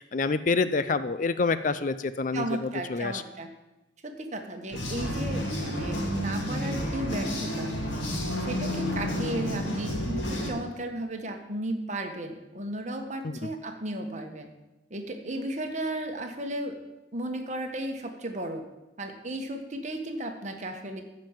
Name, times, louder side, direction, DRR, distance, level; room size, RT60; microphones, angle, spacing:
voice 1, 0.0-3.2 13.2-13.4, left 4 dB, 45° left, 13 dB, 0.4 m, -27 dB
voice 2, 2.3-3.5 4.0-7.7 8.4-14.5 14.9-16.8 17.1-18.6 19.0-21.0, right 1 dB, 40° right, 4 dB, 1.4 m, -34 dB
sound 1, 4.7-10.5, equal, 90° left, 2.7 m, -30 dB
14.5 x 5.4 x 7.4 m, 1.0 s
head